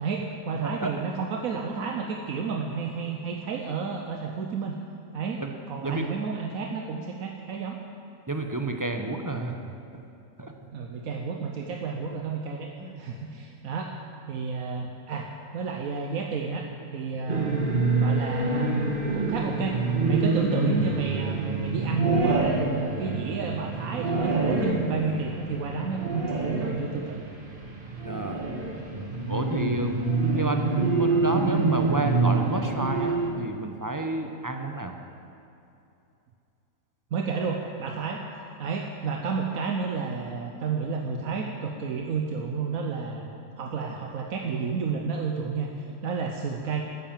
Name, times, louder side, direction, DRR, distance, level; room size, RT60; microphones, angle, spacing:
voice 1, 0.0-4.8 5.1-7.8 10.7-12.7 13.0-13.9 14.3-16.7 16.9-17.7 18.0-19.8 20.0-27.2 37.1-38.2 38.6-43.3 43.6-46.8, right 5 dB, 80° right, 2 dB, 1.3 m, -31 dB
voice 2, 8.3-9.6 10.4-10.5 12.8-13.0 28.0-28.4 29.3-34.9, right 2 dB, 20° right, 4 dB, 0.7 m, -30 dB
sound 1, 17.3-33.3, right 3 dB, 40° right, 1.6 m, -26 dB
12.5 x 10.5 x 7.4 m, 2.7 s
omnidirectional pair, 1.5 m